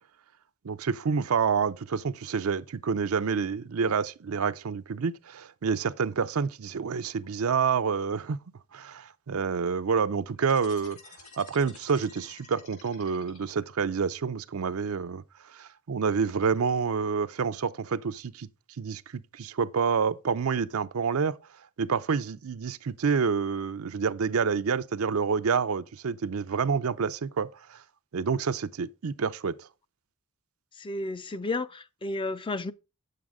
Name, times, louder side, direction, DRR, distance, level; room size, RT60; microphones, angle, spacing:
voice 1, 0.6-8.4 8.7-11.0 11.4-15.2 15.5-18.5 18.8-21.4 21.8-27.8 28.1-29.7, right 5 dB, 70° right, 0.5 m, -28 dB
sound 1, 10.4-13.9, left 4 dB, 80° left, 3.7 m, -51 dB
voice 2, 30.8-32.7, left 2 dB, 25° left, 0.4 m, -32 dB
9.5 x 7.6 x 3.5 m
head